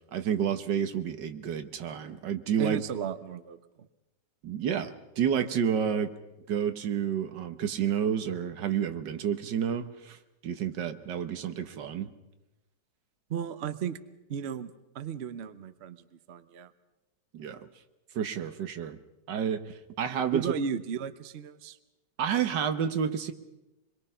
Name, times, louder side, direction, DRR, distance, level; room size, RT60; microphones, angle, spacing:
voice 1, 0.1-2.8 4.4-6.1 6.5-10.2 10.4-12.1 17.3-17.7 18.1-19.0 19.3-19.6 20.0-20.5 22.2-23.3, right 8 dB, 80° right, 10 dB, 1.8 m, -30 dB
voice 2, 2.6-3.6 13.3-14.0 14.3-16.7 20.3-21.8, right 7 dB, 45° right, 12 dB, 0.9 m, -35 dB
26.0 x 22.0 x 5.6 m, 0.98 s
omnidirectional pair, 1.9 m